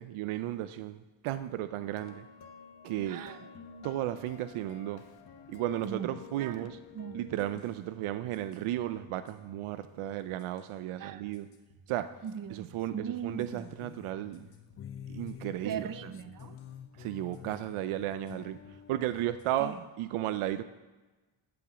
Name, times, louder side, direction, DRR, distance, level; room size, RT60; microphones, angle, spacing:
voice 1, 0.0-2.3 2.8-3.2 3.8-5.0 5.5-6.8 7.1-11.5 11.9-12.1 12.5-14.5 15.1-16.1 17.0-18.6 18.9-20.6, right 13 dB, 80° right, 12 dB, 0.7 m, -34 dB
sound 1, 1.8-7.6, left 6 dB, 50° left, 1.2 m, -50 dB
voice 2, 3.1-3.9 5.8-6.1 6.4-7.2 11.0-11.5 12.2-13.7 15.6-16.6 19.6-19.8, right 8 dB, 40° right, 11 dB, 0.8 m, -40 dB
sound 2, 7.0-19.8, left 2 dB, 70° left, 2.1 m, -59 dB
sound 3, 13.5-19.2, left 9 dB, 30° left, 0.4 m, -48 dB
15.0 x 5.3 x 6.9 m, 1.2 s
cardioid pair, 90°, 50 cm